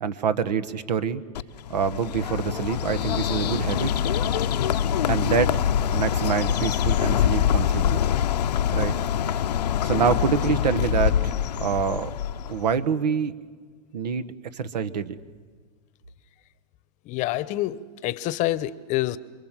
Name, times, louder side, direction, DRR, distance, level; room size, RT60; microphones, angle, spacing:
voice 1, 0.0-1.2 1.7-3.9 5.1-5.6 5.9-8.0 8.7-8.9 9.3-9.4 9.8-11.3 11.6-12.1 12.5-13.3 13.9-15.2, right 6 dB, 80° right, 14 dB, 1.4 m, -26 dB
Bird, 1.3-12.8, left 9 dB, 75° left, 0.7 m, -24 dB
voice 2, 17.0-19.2, left 15 dB, 35° left, 17 dB, 0.9 m, -27 dB
27.5 x 23.0 x 7.5 m, 1.5 s
hypercardioid pair, 120°, 21 cm